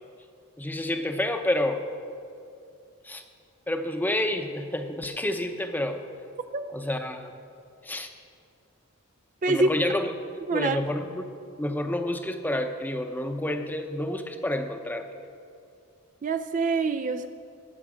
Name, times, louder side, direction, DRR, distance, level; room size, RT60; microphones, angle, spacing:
voice 1, 0.6-1.8 3.0-3.2 3.7-6.0 6.7-7.3 7.8-8.1 9.5-10.1 10.5-11.3 11.6-15.1, left 1 dB, 10° left, 6 dB, 0.7 m, -29 dB
voice 2, 10.5-10.8 16.2-17.3, right 3 dB, 35° right, 8 dB, 0.4 m, -25 dB
18.5 x 8.1 x 5.0 m, 2.5 s
head